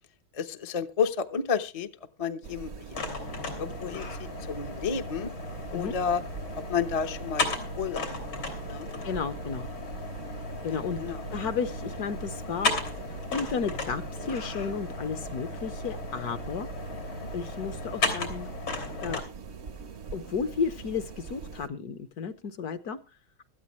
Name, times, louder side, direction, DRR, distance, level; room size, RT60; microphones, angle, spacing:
voice 1, 0.3-1.9 2.2-3.2 3.6-5.3 5.7-6.2 6.7-7.5 7.8-8.1 8.7-8.9 10.7-11.2 17.2-17.3, left 6 dB, 35° left, 7 dB, 0.5 m, -31 dB
sound 1, 2.4-21.7, right 5 dB, 50° right, 0.8 m, -43 dB
sound 2, 2.9-19.2, left 3 dB, 80° left, 4.0 m, -35 dB
voice 2, 9.0-9.7 10.6-11.0 11.3-12.7 13.3-16.7 17.3-18.5 19.0-19.2 20.1-23.0, left 6 dB, 60° left, 12 dB, 1.2 m, -33 dB
17.0 x 13.5 x 3.1 m, 0.31 s
omnidirectional pair, 2.2 m